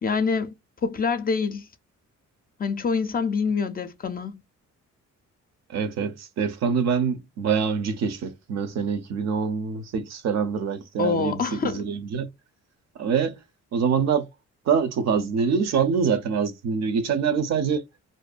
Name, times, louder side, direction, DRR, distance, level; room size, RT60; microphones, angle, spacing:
voice 1, 0.0-0.5 0.8-1.7 2.6-4.4 11.0-11.9, left 5 dB, 30° left, 0.4 m, -26 dB
voice 2, 5.7-12.3 13.0-13.4 13.7-14.3 14.7-17.8, right 6 dB, 60° right, 0.6 m, -25 dB
2.5 x 2.2 x 2.4 m
cardioid pair, 90°, 30 cm